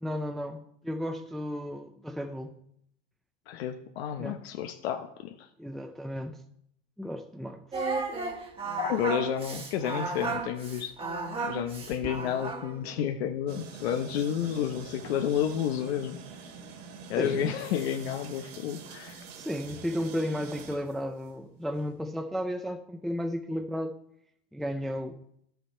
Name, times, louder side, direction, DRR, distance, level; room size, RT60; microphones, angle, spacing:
voice 1, 0.0-2.5 4.2-4.4 5.6-6.4 7.0-7.6 17.2-17.5 19.4-23.9 24.5-25.2, equal, ahead, 6 dB, 0.4 m, -34 dB
voice 2, 3.5-5.5 8.8-10.9 11.4-16.2 17.1-19.2, left 9 dB, 85° left, 5 dB, 0.9 m, -31 dB
Singing, 7.7-12.8, right 3 dB, 20° right, 1.4 m, -34 dB
sound 1, 13.5-21.4, right 5 dB, 75° right, 2.3 m, -45 dB
11.0 x 7.0 x 4.4 m, 0.72 s
supercardioid pair, 130°, 31 cm